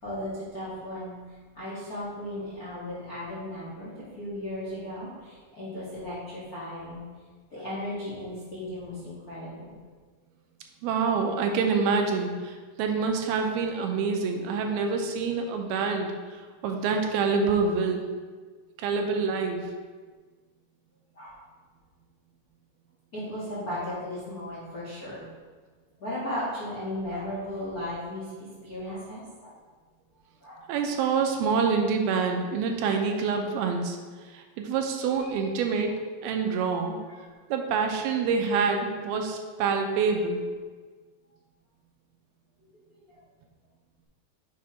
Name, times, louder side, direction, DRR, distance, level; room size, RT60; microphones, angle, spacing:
voice 1, 0.0-1.1 1.5-7.0 7.5-9.7 21.1-21.3 23.1-25.3 26.0-29.5 30.4-30.6 31.5-31.7 32.1-32.2 35.1-35.5 37.2-37.3 42.9-43.2, left 1 dB, 70° left, -10 dB, 0.8 m, -36 dB
voice 2, 10.8-16.1 16.6-18.1 18.8-19.7 30.7-34.0 34.3-36.0 36.2-37.0 37.5-40.4, right 5 dB, 80° right, 3 dB, 2.6 m, -26 dB
6.8 x 4.9 x 4.2 m, 1.4 s
omnidirectional pair, 4.5 m